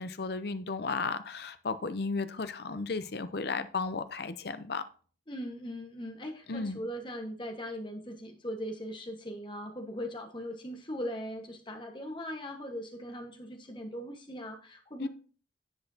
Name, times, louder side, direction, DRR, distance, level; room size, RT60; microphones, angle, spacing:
voice 1, 0.0-4.8 6.5-6.8 15.0-15.1, left 4 dB, 55° left, 0.6 m, -34 dB
voice 2, 5.3-15.1, equal, 25° left, 1.3 m, -39 dB
10.5 x 8.0 x 2.8 m
head